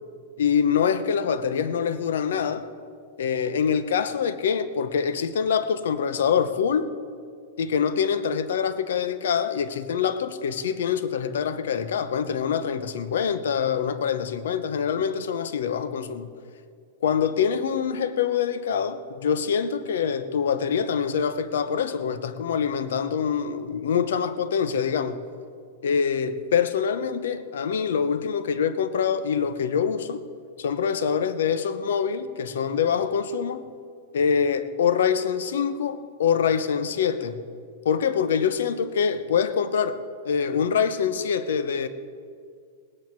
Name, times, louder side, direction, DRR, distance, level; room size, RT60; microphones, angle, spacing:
voice 1, 0.4-2.7 3.2-6.9 7.6-16.3 17.0-25.2 25.8-30.2 30.6-33.7 34.1-37.4 37.8-40.0 40.2-41.9, left 7 dB, 85° left, 0.8 m, -25 dB
18.5 x 9.7 x 4.6 m
supercardioid pair, 145°, 0 cm